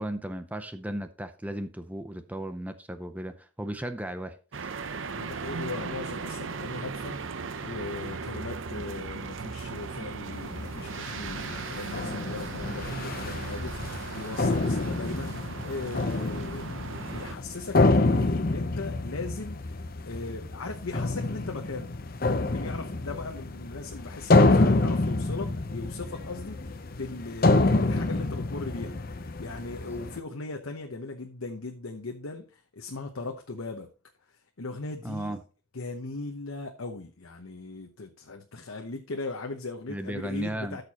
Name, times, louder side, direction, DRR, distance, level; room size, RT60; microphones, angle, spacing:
voice 1, 0.0-4.3 30.0-30.1 35.0-35.4 39.9-40.8, right 1 dB, 5° right, 0.5 m, -35 dB
sound 1, 4.5-17.3, right 4 dB, 65° right, 0.6 m, -37 dB
voice 2, 5.1-7.2 7.6-21.9 22.2-33.9 34.3-35.4 35.7-40.8, left 3 dB, 80° left, 1.0 m, -38 dB
sound 2, 10.3-30.2, left 2 dB, 45° left, 0.7 m, -27 dB
12.5 x 6.7 x 2.9 m
head